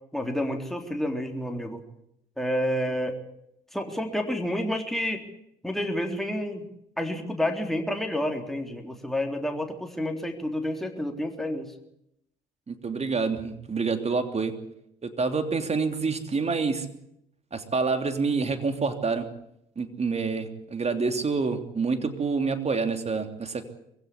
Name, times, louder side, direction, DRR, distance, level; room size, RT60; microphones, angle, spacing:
voice 1, 0.1-1.8 2.4-3.2 3.7-5.2 5.6-6.7 7.0-11.7, left 1 dB, ahead, 3 dB, 3.7 m, -29 dB
voice 2, 12.7-14.5 15.0-16.9 17.5-19.3 19.8-23.6, right 4 dB, 30° right, 8 dB, 3.2 m, -27 dB
23.5 x 16.0 x 8.5 m, 0.78 s
hypercardioid pair, 55°, 21 cm